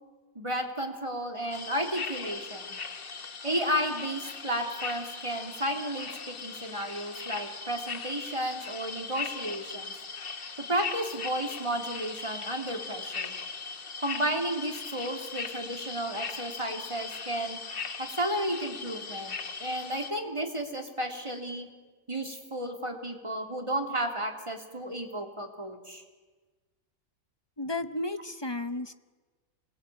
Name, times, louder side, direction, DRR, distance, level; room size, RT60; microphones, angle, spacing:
voice 1, 0.3-2.8 3.4-9.9 10.7-13.3 14.0-17.6 18.0-19.3 19.6-21.7 22.1-26.0, right 1 dB, 20° right, 3 dB, 3.1 m, -33 dB
sound 1, 1.5-20.1, left 5 dB, 40° left, 1.2 m, -39 dB
voice 2, 27.6-28.9, left 2 dB, 20° left, 10 dB, 0.8 m, -33 dB
27.0 x 20.0 x 9.2 m, 1.3 s
omnidirectional pair, 1.6 m